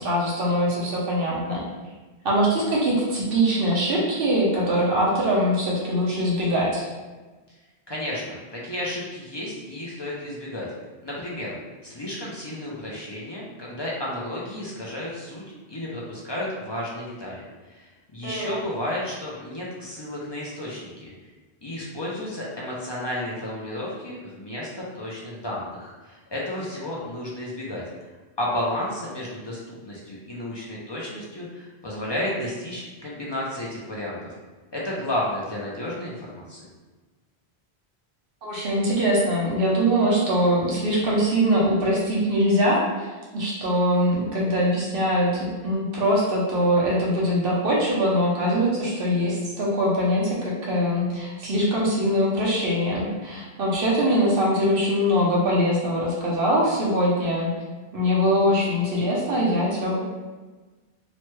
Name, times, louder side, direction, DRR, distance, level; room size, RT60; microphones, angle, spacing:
voice 1, 0.0-1.6 2.2-6.8 18.2-18.6 38.4-57.5 57.9-60.0, equal, 65° right, -5 dB, 0.9 m, -22 dB
voice 2, 7.9-10.7 11.0-11.6 11.8-15.4 15.7-21.1 21.6-27.8 28.4-34.2 34.7-36.6, left 1 dB, 40° left, -5 dB, 0.4 m, -32 dB
3.0 x 2.1 x 3.0 m, 1.3 s
omnidirectional pair, 1.1 m